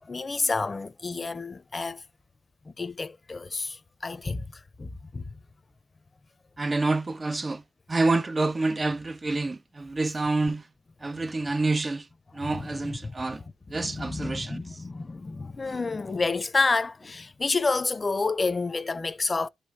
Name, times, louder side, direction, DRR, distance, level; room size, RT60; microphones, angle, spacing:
voice 1, 0.0-2.0 2.7-4.5 4.8-5.2 12.4-12.6 12.8-13.1 13.8-19.5, left 3 dB, 25° left, 0.7 m, -29 dB
voice 2, 6.6-7.6 7.9-10.7 11.0-12.1 12.3-13.4 13.7-14.8, right 3 dB, 25° right, 0.4 m, -27 dB
12.5 x 5.1 x 2.8 m
cardioid pair, 90°, 0 cm